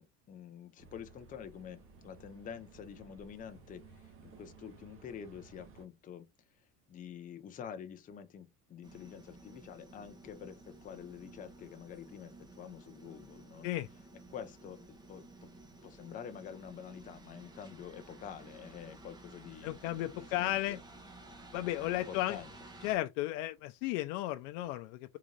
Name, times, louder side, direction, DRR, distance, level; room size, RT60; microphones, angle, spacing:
voice 1, 0.0-6.3 6.9-13.7 14.3-15.5 15.8-19.7 20.1-20.8 21.8-22.5, left 8 dB, 20° left, 0.5 m, -47 dB
sound 1, 0.8-5.9, right 4 dB, 35° right, 1.0 m, -57 dB
sound 2, 8.8-23.0, right 2 dB, 10° right, 0.7 m, -54 dB
voice 2, 19.6-20.8 21.5-22.4 22.8-25.2, left 15 dB, 75° left, 0.6 m, -34 dB
3.8 x 2.5 x 3.1 m
cardioid pair, 150°, 38 cm